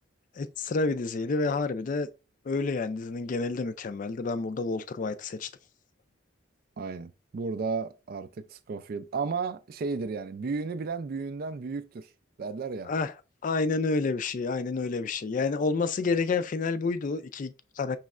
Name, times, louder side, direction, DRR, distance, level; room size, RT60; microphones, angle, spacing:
voice 1, 0.4-2.1 2.5-5.5 12.8-13.1 13.4-18.0, left 4 dB, 40° left, 0.3 m, -29 dB
voice 2, 6.8-12.1 12.4-12.9, right 4 dB, 50° right, 0.3 m, -33 dB
5.2 x 3.1 x 2.4 m
head